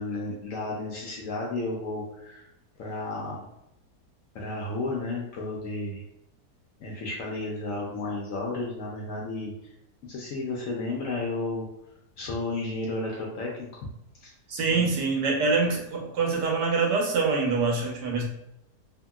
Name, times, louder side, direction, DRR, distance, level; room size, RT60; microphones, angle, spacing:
voice 1, 0.0-2.4 2.8-3.5 4.3-6.0 6.8-9.5 10.0-11.7 12.2-13.7 14.2-14.3 14.7-14.9, left 2 dB, 70° left, -2 dB, 0.8 m, -32 dB
voice 2, 14.5-18.2, right 4 dB, 85° right, -1 dB, 1.3 m, -25 dB
2.8 x 2.7 x 2.2 m, 0.85 s
omnidirectional pair, 1.8 m